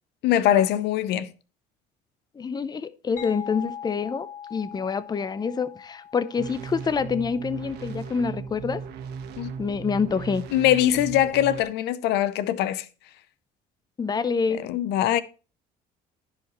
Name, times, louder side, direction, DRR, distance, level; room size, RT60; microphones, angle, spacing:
voice 1, 0.2-1.3 9.4-9.5 10.5-12.9 14.7-15.2, left 12 dB, 85° left, 0.6 m, -22 dB
voice 2, 2.3-8.8 9.6-10.4 14.0-14.6, left 5 dB, 25° left, 0.6 m, -27 dB
sound 1, 3.2-8.6, left 9 dB, 45° left, 2.0 m, -42 dB
sound 2, 6.4-11.6, right 6 dB, 80° right, 1.1 m, -37 dB
14.5 x 5.0 x 3.0 m
cardioid pair, 110°, 17 cm